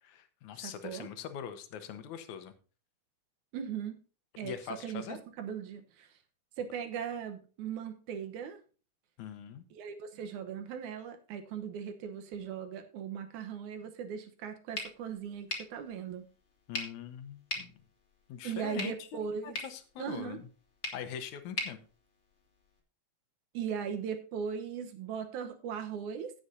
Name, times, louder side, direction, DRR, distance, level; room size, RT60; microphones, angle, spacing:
voice 1, 0.0-2.5 4.4-5.2 9.2-9.6 16.7-17.7 18.3-20.5 20.9-21.8, left 8 dB, 80° left, 10 dB, 2.3 m, -42 dB
voice 2, 0.6-1.1 3.5-4.0 4.4-4.6 4.8-6.1 6.6-8.6 9.7-16.3 18.4-19.6 20.0-20.4 23.5-26.3, right 7 dB, 80° right, 8 dB, 2.5 m, -38 dB
sound 1, 14.7-22.8, left 2 dB, 25° left, 1.8 m, -43 dB
16.0 x 7.8 x 2.7 m, 0.37 s
omnidirectional pair, 3.5 m